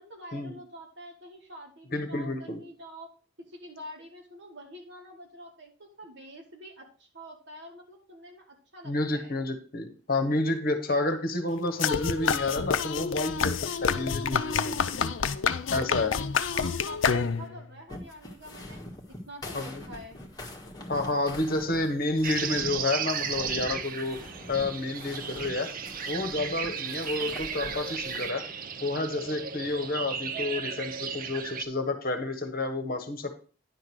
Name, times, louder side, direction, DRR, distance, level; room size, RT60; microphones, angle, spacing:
voice 1, 0.0-3.1 3.5-5.7 6.0-9.3 16.5-18.8 19.3-20.2, equal, 65° right, -1 dB, 2.5 m, -46 dB
voice 2, 1.9-2.6 8.8-15.1 15.7-16.2 19.5-19.8 20.9-24.2 24.5-25.7 26.1-28.4 28.8-33.3, left 2 dB, 50° left, 6 dB, 1.3 m, -30 dB
sound 1, 11.8-17.6, left 6 dB, 80° left, 0.6 m, -28 dB
sound 2, 17.9-28.3, left 1 dB, 20° left, 1.8 m, -44 dB
sound 3, 22.2-31.6, right 7 dB, 45° right, 0.6 m, -35 dB
10.5 x 3.8 x 6.1 m, 0.40 s
head